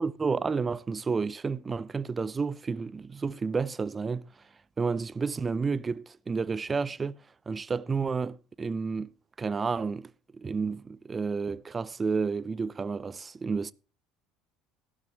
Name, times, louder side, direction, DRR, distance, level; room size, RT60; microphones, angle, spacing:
voice 1, 0.0-4.2 4.8-7.2 7.5-13.7, right 5 dB, 25° right, 0.5 m, -31 dB
15.0 x 11.5 x 3.1 m
hypercardioid pair, 70°, 0 cm